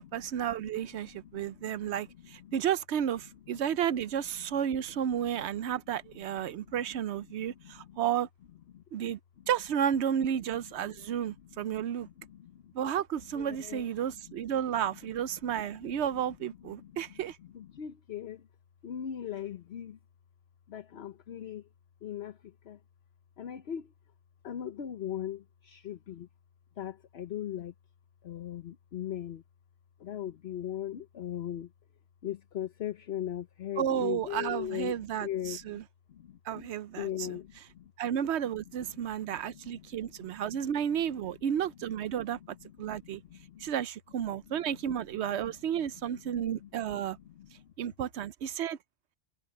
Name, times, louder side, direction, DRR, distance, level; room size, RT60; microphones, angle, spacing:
voice 1, 0.0-8.3 8.9-9.2 9.5-12.1 12.7-17.4 33.8-35.8 36.5-37.4 38.0-42.4 42.8-43.2 43.6-47.2 47.8-48.8, right 9 dB, 85° right, 1.0 m, -32 dB
voice 2, 0.6-1.9 2.2-2.5 3.5-3.6 6.5-6.7 7.3-8.0 8.7-8.8 10.8-11.4 11.6-12.7 13.3-14.4 14.9-15.0 15.4-15.9 16.7-17.0 17.4-18.5 18.8-20.0 20.7-21.7 22.0-22.8 23.4-23.9 24.4-26.3 26.8-27.7 28.2-29.4 30.0-31.7 32.2-35.8 36.1-36.7 36.9-37.9 38.8-40.2 42.5-43.7 44.3-44.4 45.5-46.7 47.0-47.7, left 10 dB, 70° left, 1.1 m, -40 dB
omnidirectional pair, 1.1 m